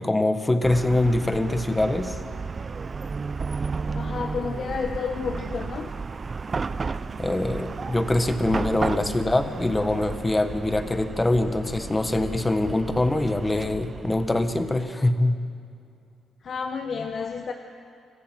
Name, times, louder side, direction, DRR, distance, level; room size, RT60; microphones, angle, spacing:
voice 1, 0.0-2.2 7.2-15.3, left 2 dB, 15° left, 9 dB, 1.4 m, -24 dB
Chatter / Car passing by / Traffic noise roadway noise, 0.6-14.9, right 4 dB, 35° right, 0.5 m, -33 dB
voice 2, 3.9-5.9 16.4-17.5, left 5 dB, 50° left, 5 dB, 1.0 m, -30 dB
25.0 x 15.0 x 7.7 m, 2.5 s
cardioid pair, 90°, 0 cm